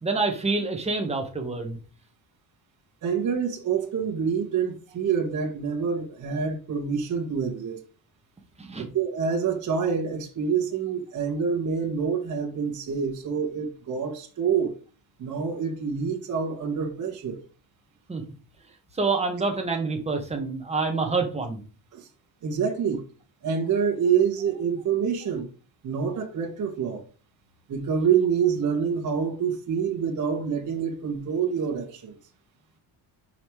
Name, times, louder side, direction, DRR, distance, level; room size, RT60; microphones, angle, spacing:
voice 1, 0.0-1.8 8.6-8.9 18.1-18.2 18.9-21.6, right 3 dB, 15° right, 1.4 m, -27 dB
voice 2, 3.0-7.8 8.8-14.7 15.2-17.4 21.9-22.1 22.4-23.0 23.4-25.5 25.8-27.0 27.7-32.1, right 6 dB, 40° right, 1.7 m, -26 dB
5.7 x 5.0 x 4.8 m
cardioid pair, 160°, 44 cm